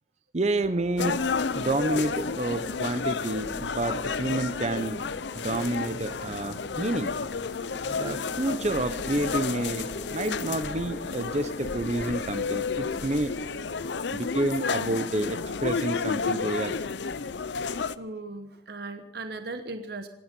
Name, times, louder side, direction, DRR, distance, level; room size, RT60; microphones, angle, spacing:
voice 1, 0.3-1.3 1.5-5.1 5.3-7.1 7.9-13.3 14.1-16.8, right 2 dB, 35° right, 11 dB, 0.8 m, -29 dB
sound 1, 0.6-14.0, left 1 dB, 25° left, 2.0 m, -45 dB
sound 2, 1.0-18.0, left 5 dB, 65° left, 0.6 m, -31 dB
voice 2, 18.0-20.1, right 2 dB, 55° right, 7 dB, 1.2 m, -37 dB
26.0 x 10.0 x 5.4 m, 0.79 s
head